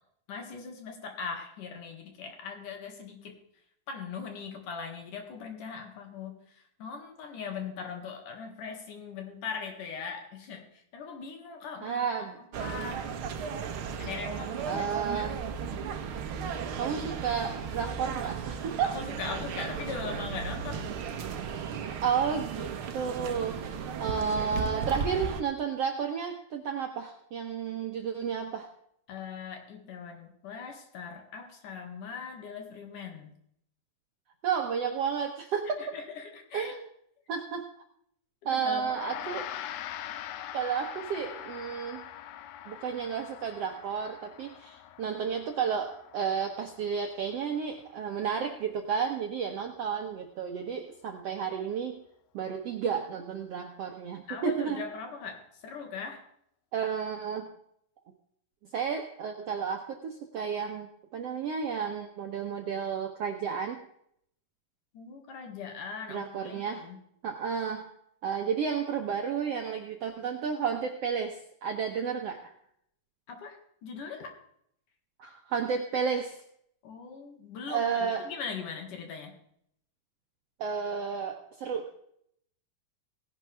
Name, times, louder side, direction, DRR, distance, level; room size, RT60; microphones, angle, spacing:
voice 1, 0.3-3.4 3.9-12.1 12.6-13.1 14.0-15.3 18.8-20.9 29.1-33.3 35.8-36.7 38.4-38.9 54.3-56.2 64.9-67.0 73.3-74.3 76.8-79.3, left 5 dB, 65° left, 4 dB, 3.4 m, -40 dB
voice 2, 11.8-12.4 14.7-15.4 16.8-19.0 22.0-28.7 34.4-35.9 36.5-36.9 37.3-37.7 38.4-39.5 40.5-42.0 42.7-52.0 52.3-54.9 56.7-57.6 58.7-63.8 66.1-66.9 67.2-67.9 68.2-72.5 75.2-76.4 77.7-78.3 80.6-81.9, right 6 dB, 70° right, 3 dB, 1.5 m, -32 dB
sound 1, 12.5-25.4, right 6 dB, 85° right, 1.1 m, -35 dB
Gong, 38.8-48.4, left 11 dB, 85° left, 2.7 m, -43 dB
18.0 x 11.0 x 3.4 m, 0.69 s
omnidirectional pair, 4.1 m